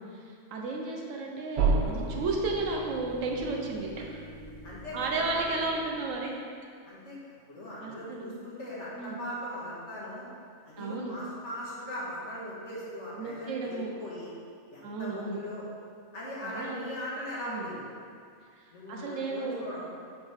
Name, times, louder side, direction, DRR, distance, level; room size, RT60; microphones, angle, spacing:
voice 1, 0.0-4.2 4.9-6.3 7.8-8.3 8.9-9.2 10.8-11.2 13.2-13.9 14.8-15.4 16.4-16.8 17.5-17.6 18.6-19.6, right 3 dB, 85° right, 0 dB, 1.2 m, -33 dB
sound 1, 1.6-6.2, right 4 dB, 65° right, 0.8 m, -33 dB
voice 2, 4.6-5.6 6.8-10.3 10.7-14.3 14.7-15.7 16.1-17.8 18.7-19.9, equal, 65° left, -7 dB, 1.7 m, -39 dB
7.6 x 4.1 x 3.5 m, 2.2 s
omnidirectional pair, 1.3 m